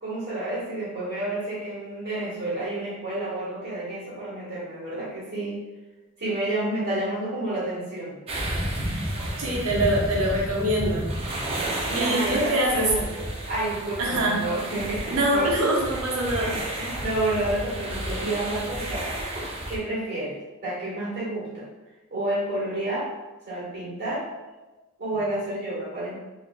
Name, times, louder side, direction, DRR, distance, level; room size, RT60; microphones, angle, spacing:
voice 1, 0.0-5.6 6.2-8.1 11.6-15.5 16.7-19.1 19.7-20.4 20.6-21.7 22.1-23.1 23.5-24.3 25.0-26.1, right 1 dB, 50° right, -7 dB, 1.4 m, -30 dB
sound 1, 8.3-19.8, right 1 dB, 25° right, 0.5 m, -31 dB
voice 2, 9.4-11.1 11.9-12.9 14.0-14.4 15.1-16.6, right 1 dB, 85° right, -3 dB, 0.9 m, -24 dB
3.8 x 3.0 x 2.3 m, 1.1 s
head